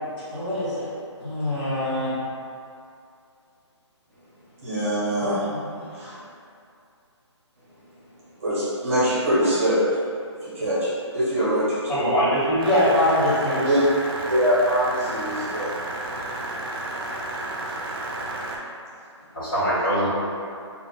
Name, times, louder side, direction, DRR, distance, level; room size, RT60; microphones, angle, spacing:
voice 1, 0.3-0.9 1.2-2.2 5.2-5.7 12.6-13.7, left 1 dB, 25° left, -16 dB, 0.7 m, -23 dB
voice 2, 4.6-5.5 5.9-6.2 8.4-9.8 10.4-12.0 13.6-13.8 14.3-15.8, equal, 30° right, -11 dB, 0.9 m, -23 dB
voice 3, 11.9-13.0 13.5-13.6 19.3-20.1, right 1 dB, 50° left, -11 dB, 1.3 m, -23 dB
sound 1, 12.6-18.6, right 1 dB, 50° right, 0.4 m, -32 dB
2.3 x 2.2 x 3.7 m, 2.4 s
hypercardioid pair, 170°, 15 cm